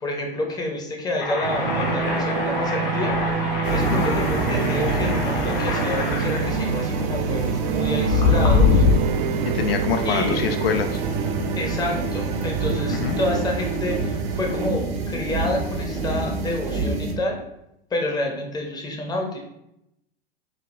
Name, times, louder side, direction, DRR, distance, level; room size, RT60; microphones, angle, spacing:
voice 1, 0.0-3.1 3.7-8.8 10.0-10.4 11.5-17.4 17.9-19.4, left 2 dB, 15° left, 1 dB, 0.7 m, -28 dB
sound 1, 1.2-9.0, left 5 dB, 50° left, 1.0 m, -24 dB
sound 2, 1.4-14.7, right 7 dB, 45° right, 0.4 m, -28 dB
sound 3, 3.6-17.1, right 3 dB, 70° right, 0.9 m, -28 dB
voice 2, 9.5-11.0 13.0-13.2, left 7 dB, 75° left, 7 dB, 0.5 m, -25 dB
5.0 x 2.2 x 2.6 m, 0.82 s
hypercardioid pair, 100°, 30 cm